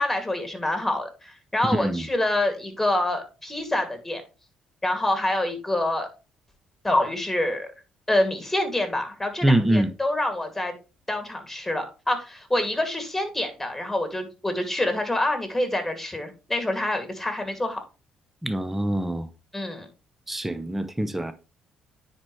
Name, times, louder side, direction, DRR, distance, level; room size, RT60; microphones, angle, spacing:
voice 1, 0.0-4.2 4.8-6.1 6.8-7.7 8.1-10.7 11.1-17.8 19.5-19.9, left 1 dB, 10° left, 2.5 m, -26 dB
voice 2, 9.4-9.9 18.4-19.3 20.3-21.3, right 1 dB, 10° right, 0.8 m, -24 dB
9.7 x 4.4 x 3.3 m
supercardioid pair, 75°, 2 cm